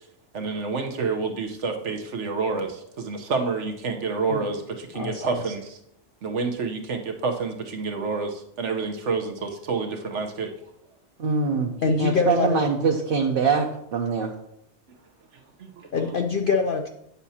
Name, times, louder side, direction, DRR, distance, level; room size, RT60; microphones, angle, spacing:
voice 1, 0.3-5.8 6.2-10.5 15.6-16.0, right 4 dB, 85° right, 4 dB, 1.3 m, -28 dB
voice 2, 11.2-11.7 12.0-14.3, right 5 dB, 55° right, 1 dB, 0.9 m, -23 dB
voice 3, 11.8-12.6 15.9-16.9, left 4 dB, 60° left, 3 dB, 0.6 m, -24 dB
9.2 x 7.0 x 2.9 m, 0.76 s
omnidirectional pair, 1.2 m